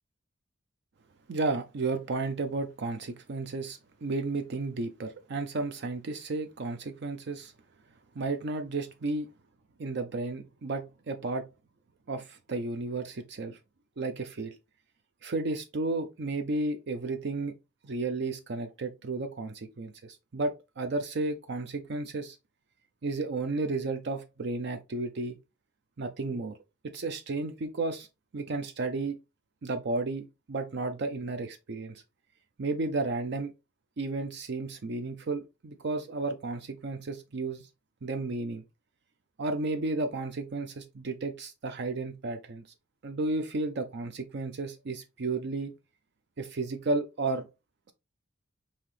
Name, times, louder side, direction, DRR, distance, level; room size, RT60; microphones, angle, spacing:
voice 1, 1.3-7.5 8.2-9.3 9.8-11.5 12.1-13.6 14.0-14.6 15.2-17.6 17.8-22.4 23.0-25.4 26.0-26.6 26.8-28.1 28.3-29.2 29.6-32.0 32.6-33.5 34.0-37.7 38.0-38.6 39.4-42.6 43.0-45.7 46.4-47.5, right 3 dB, 60° right, 0.5 m, -33 dB
5.5 x 2.9 x 3.1 m
head